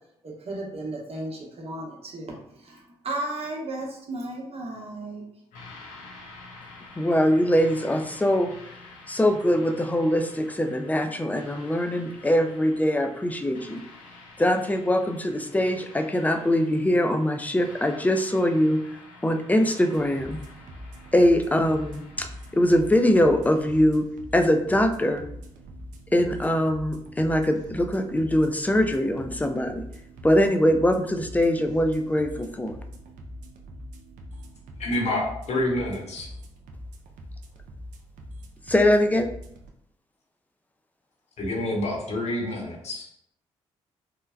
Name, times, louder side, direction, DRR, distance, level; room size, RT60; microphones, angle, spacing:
voice 1, 0.2-5.2, right 2 dB, 50° right, 0 dB, 0.9 m, -34 dB
sound 1, 5.5-23.8, left 3 dB, 80° left, 0.6 m, -48 dB
voice 2, 7.0-8.5 9.1-13.8 14.4-18.8 19.2-20.4 21.1-22.3 22.5-24.1 24.3-25.2 26.1-29.8 30.2-32.8 38.7-39.3, left 1 dB, 10° left, 6 dB, 0.4 m, -22 dB
sound 2, 19.9-39.7, equal, 70° right, 0.4 m, -43 dB
voice 3, 34.8-36.3 41.4-43.1, left 1 dB, 55° left, -1 dB, 0.9 m, -28 dB
3.2 x 2.1 x 2.3 m, 0.73 s
hypercardioid pair, 50°, 13 cm